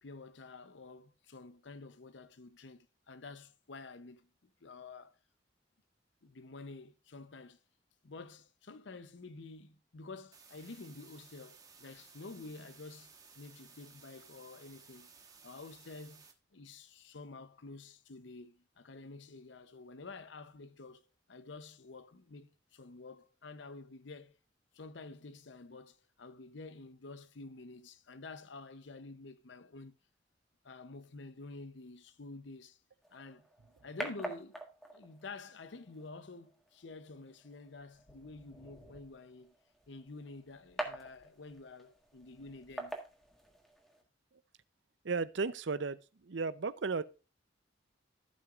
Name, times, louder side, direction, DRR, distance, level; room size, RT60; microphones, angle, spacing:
voice 1, 0.0-5.2 6.2-7.6 8.0-15.1 15.4-16.2 16.5-24.4 24.7-29.9 30.6-32.8 33.1-33.5 33.8-34.6 34.9-39.5 39.9-43.0, left 3 dB, 75° left, 0.7 m, -50 dB
sound 1, 10.3-16.3, right 5 dB, 20° right, 1.2 m, -58 dB
sound 2, 33.0-44.0, right 1 dB, ahead, 1.6 m, -47 dB
voice 2, 45.0-47.0, right 4 dB, 75° right, 0.6 m, -35 dB
15.5 x 5.9 x 2.5 m
head